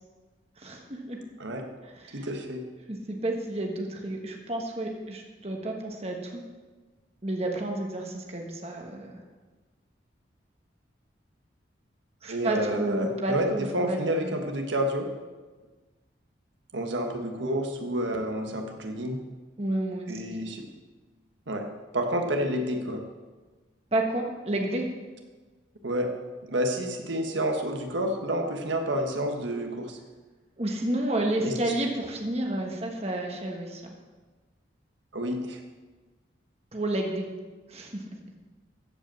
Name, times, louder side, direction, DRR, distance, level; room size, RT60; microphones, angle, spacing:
voice 1, 0.6-1.2 1.9-2.3 2.9-6.4 7.2-9.2 12.2-14.3 19.6-20.1 23.9-24.8 30.6-33.8 36.7-37.3 37.7-38.0, right 1 dB, 35° right, 1 dB, 1.4 m, -30 dB
voice 2, 2.1-2.6 12.3-15.1 16.7-19.2 20.1-20.6 21.5-21.7 21.9-23.0 25.8-26.1 26.5-30.0 31.4-31.7 35.1-35.6, equal, 80° right, 3 dB, 1.3 m, -29 dB
14.5 x 5.4 x 7.6 m, 1.3 s
head